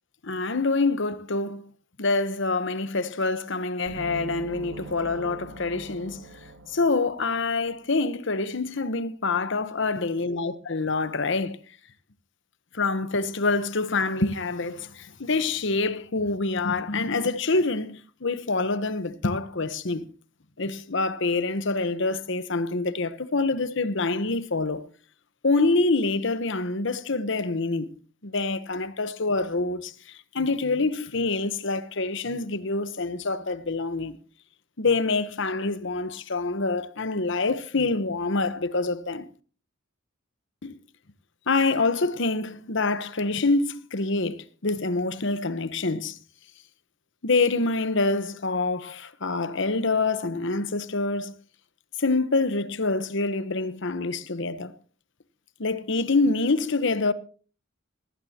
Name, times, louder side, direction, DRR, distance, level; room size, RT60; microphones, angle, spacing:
voice 1, 0.2-1.6 2.0-6.2 6.7-11.6 12.7-20.1 20.6-24.9 25.4-27.9 28.2-34.2 34.8-39.3 40.6-40.8 41.5-46.2 47.2-51.3 52.0-54.7 55.6-57.1, left 3 dB, 65° left, 1.1 m, -26 dB
sound 1, 3.9-7.6, right 3 dB, 75° right, 2.0 m, -42 dB
19.5 x 15.5 x 2.9 m
head